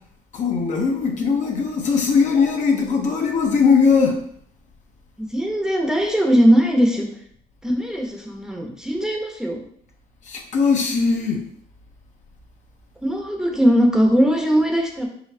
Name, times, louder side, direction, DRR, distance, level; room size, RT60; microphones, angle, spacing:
voice 1, 0.3-4.2 10.3-11.4, left 5 dB, 45° left, 2 dB, 0.7 m, -19 dB
voice 2, 5.2-7.1 7.6-9.6 13.0-15.1, equal, 5° right, 0 dB, 0.8 m, -19 dB
4.1 x 4.0 x 2.7 m, 0.65 s
cardioid pair, 110°, 17 cm